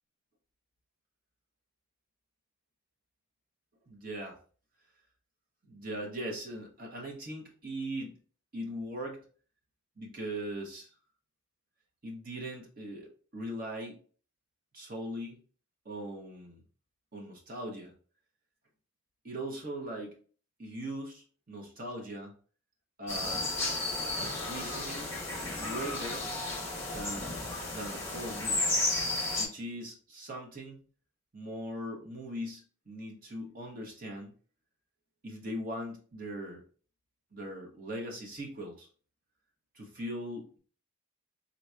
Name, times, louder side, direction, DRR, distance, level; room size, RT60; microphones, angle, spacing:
voice 1, 3.9-4.4 5.6-8.2 8.5-9.2 10.0-10.9 12.0-14.0 14.7-15.4 15.8-16.6 17.1-17.9 19.2-20.2 20.6-22.3 23.0-23.9 24.2-25.2 25.6-26.3 26.9-28.7 29.4-30.8 31.3-34.3 35.2-36.6 37.3-38.9 39.7-40.6, right 1 dB, 40° right, 0 dB, 0.9 m, -40 dB
sound 1, 23.1-29.4, left 2 dB, 10° left, 0.9 m, -33 dB
4.0 x 3.0 x 2.3 m, 0.41 s
head